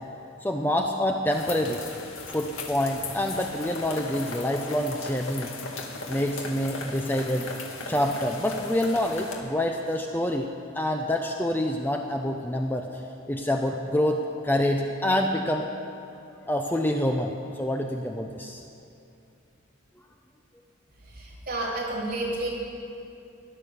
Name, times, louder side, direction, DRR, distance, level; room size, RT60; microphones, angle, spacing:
voice 1, 0.4-1.8 2.3-5.5 6.1-7.5 7.9-10.5 10.8-13.0 13.3-15.7 16.5-18.6, left 1 dB, 10° left, 3 dB, 0.6 m, -27 dB
sound 1, 1.3-9.4, left 3 dB, 80° left, 1.9 m, -37 dB
voice 2, 21.1-22.5, right 2 dB, 45° right, -6 dB, 3.6 m, -30 dB
15.5 x 11.0 x 6.9 m, 2.6 s
head